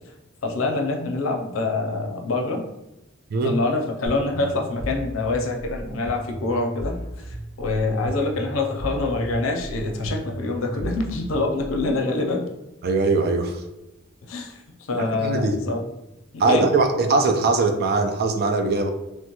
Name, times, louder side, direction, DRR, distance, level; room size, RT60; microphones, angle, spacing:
voice 1, 0.4-2.6 3.4-12.4 14.3-15.8 16.4-16.7, left 3 dB, 85° left, 2 dB, 0.5 m, -25 dB
sound 1, 4.0-12.1, equal, 80° right, 1.3 m, -35 dB
voice 2, 12.8-13.6 14.9-15.6 16.4-18.9, right 3 dB, 50° right, 6 dB, 0.3 m, -21 dB
3.1 x 2.2 x 2.9 m, 0.95 s
head